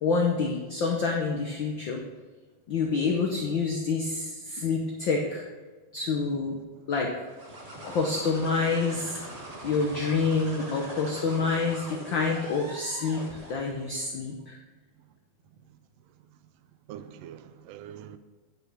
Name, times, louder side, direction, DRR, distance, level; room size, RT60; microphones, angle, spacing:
voice 1, 0.0-2.0 2.7-5.4 5.9-6.6 6.9-7.1 7.8-9.2 9.6-14.6, left 4 dB, 80° left, 1 dB, 1.1 m, -27 dB
sound 1, 7.3-13.8, right 1 dB, 40° right, 0.9 m, -42 dB
voice 2, 10.0-10.5 16.9-18.2, right 10 dB, 80° right, 11 dB, 1.4 m, -44 dB
9.9 x 5.9 x 5.5 m, 1.3 s
omnidirectional pair, 3.5 m